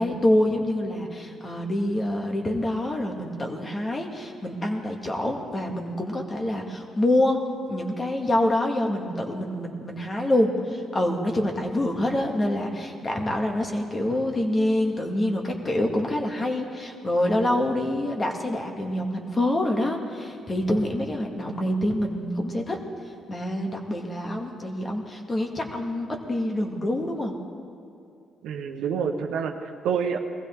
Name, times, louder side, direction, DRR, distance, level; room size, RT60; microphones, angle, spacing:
voice 1, 0.0-7.4 7.7-22.8 23.3-27.3, left 1 dB, 30° left, 2 dB, 1.9 m, -26 dB
voice 2, 28.4-30.2, right 6 dB, 85° right, 4 dB, 1.1 m, -28 dB
20.5 x 15.5 x 3.7 m, 2.5 s
cardioid pair, 90°, 0 cm